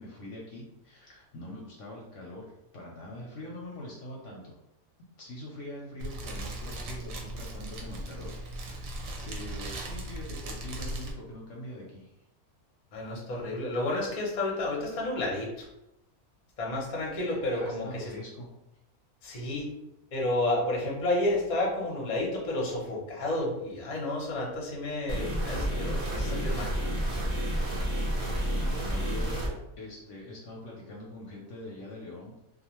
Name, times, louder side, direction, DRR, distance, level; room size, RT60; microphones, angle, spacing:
voice 1, 0.0-2.5 2.7-4.6 5.2-8.9 9.2-12.1 17.1-18.5 28.6-32.3, left 1 dB, 70° left, -2 dB, 0.8 m, -43 dB
Fire, 6.0-11.1, right 1 dB, 70° right, 0.9 m, -38 dB
voice 2, 12.9-15.7 16.6-18.1 19.2-19.7 20.1-26.7, left 1 dB, 45° left, -3 dB, 0.5 m, -31 dB
sound 1, 25.1-29.5, equal, 40° right, 0.4 m, -30 dB
2.4 x 2.3 x 2.9 m, 0.88 s
omnidirectional pair, 1.6 m